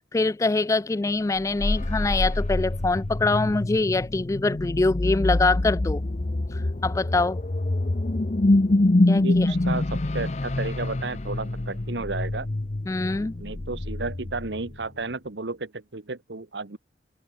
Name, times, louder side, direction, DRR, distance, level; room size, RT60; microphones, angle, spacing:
voice 1, 0.1-6.0 6.5-7.4 9.1-9.5 12.9-13.3, left 3 dB, 15° left, 0.3 m, -24 dB
sound 1, 1.4-14.8, left 2 dB, 40° left, 0.7 m, -25 dB
voice 2, 9.2-12.5 13.4-16.8, right 3 dB, 80° right, 1.2 m, -33 dB
head